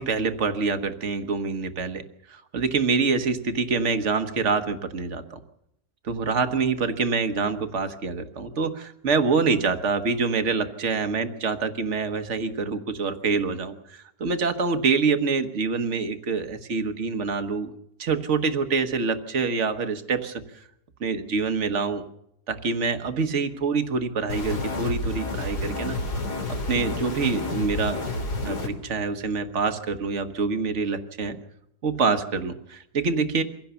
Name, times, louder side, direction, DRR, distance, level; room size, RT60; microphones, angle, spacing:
voice 1, 0.0-2.0 2.3-5.4 6.0-17.7 18.0-20.6 21.0-22.0 22.5-26.0 26.5-28.0 28.4-31.4 31.8-33.4, right 4 dB, 50° right, 9 dB, 1.5 m, -26 dB
sound 1, 24.3-28.7, left 2 dB, 85° left, 3.3 m, -29 dB
24.0 x 16.5 x 6.9 m, 0.81 s
omnidirectional pair, 1.7 m